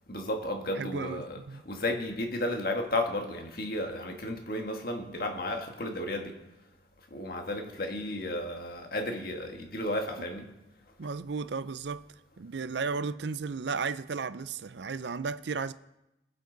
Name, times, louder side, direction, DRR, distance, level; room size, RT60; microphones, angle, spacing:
voice 1, 0.1-1.4 1.6-6.3 7.1-10.5, left 1 dB, 50° left, 1.6 m, -33 dB
voice 2, 0.7-1.6 11.0-12.0 12.4-15.7, right 5 dB, 70° right, 0.5 m, -34 dB
22.5 x 7.7 x 4.0 m
head